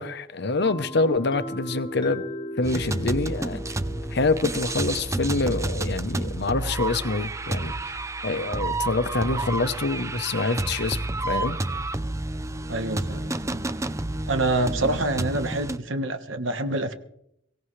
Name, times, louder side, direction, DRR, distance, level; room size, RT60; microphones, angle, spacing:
voice 1, 0.0-2.2 2.6-3.6 4.1-7.9 8.2-11.6, left 3 dB, 60° left, 12 dB, 0.9 m, -26 dB
sound 1, 0.6-8.3, left 1 dB, 25° left, 0.9 m, -39 dB
sound 2, 2.6-15.8, right 2 dB, 15° right, 0.6 m, -30 dB
voice 2, 12.7-13.9 14.3-16.9, right 2 dB, 75° right, 8 dB, 1.4 m, -27 dB
23.5 x 17.0 x 3.3 m, 0.77 s
head